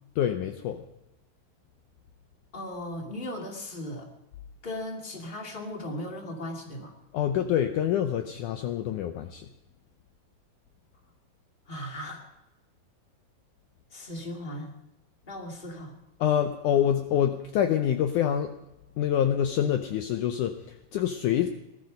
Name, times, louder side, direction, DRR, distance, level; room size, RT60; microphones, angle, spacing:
voice 1, 0.2-0.8 7.1-9.5 16.2-18.5 19.0-21.5, left 10 dB, 85° left, 6 dB, 1.8 m, -26 dB
voice 2, 2.5-4.1 4.6-6.9 11.7-12.3 13.9-14.7 15.3-16.0, left 1 dB, 15° left, 1 dB, 2.0 m, -37 dB
19.5 x 12.5 x 5.3 m, 0.93 s
omnidirectional pair, 4.6 m